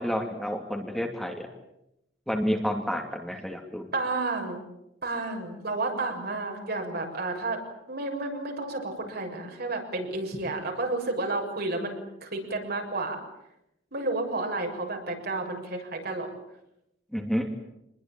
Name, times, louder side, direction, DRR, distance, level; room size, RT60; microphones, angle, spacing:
voice 1, 0.0-1.5 2.3-3.9 17.1-17.5, equal, ahead, 2 dB, 2.6 m, -29 dB
voice 2, 3.9-4.6 5.0-7.6 7.9-13.2 13.9-16.3, right 2 dB, 55° right, 2 dB, 6.8 m, -31 dB
26.5 x 21.5 x 9.0 m, 0.85 s
head